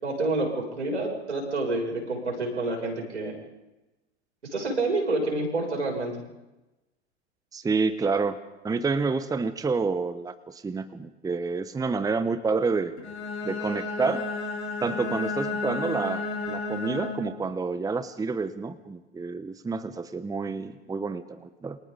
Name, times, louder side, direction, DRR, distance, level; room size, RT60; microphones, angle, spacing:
voice 1, 0.0-3.3 4.5-6.1, right 2 dB, 80° right, 0 dB, 7.5 m, -28 dB
voice 2, 7.5-8.4 8.6-12.9 13.4-14.3 14.8-21.8, right 4 dB, 10° right, 12 dB, 1.1 m, -29 dB
Bowed string instrument, 13.0-17.4, left 3 dB, 75° left, 7.9 m, -32 dB
28.0 x 26.0 x 4.1 m, 1.0 s
figure-of-eight pair, 85°, 34 cm